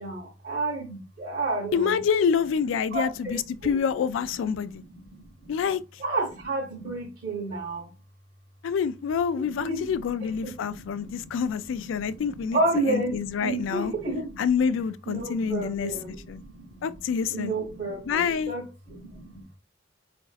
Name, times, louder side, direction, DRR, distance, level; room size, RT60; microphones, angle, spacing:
voice 1, 0.0-2.0 2.9-3.8 5.1-5.3 6.0-7.9 9.3-9.8 10.4-11.3 12.0-12.1 12.5-14.4 15.1-16.6 17.3-19.6, right 2 dB, 40° right, 0.9 m, -31 dB
voice 2, 1.7-4.8 5.5-5.8 8.6-12.6 12.9-13.9 14.4-15.9 16.3-16.4 16.8-17.5 18.1-18.5, left 6 dB, 85° left, 0.3 m, -27 dB
4.0 x 2.5 x 2.4 m
head